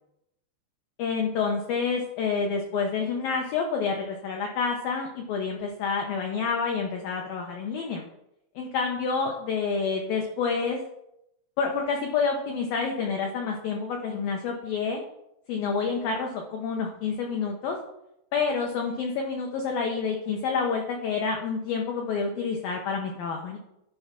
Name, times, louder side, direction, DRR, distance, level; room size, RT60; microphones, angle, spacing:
voice 1, 1.0-8.0 8.6-10.8 11.6-15.0 15.5-17.8 18.3-23.6, left 5 dB, 85° left, 2 dB, 2.0 m, -28 dB
13.0 x 4.5 x 5.8 m, 0.83 s
omnidirectional pair, 5.5 m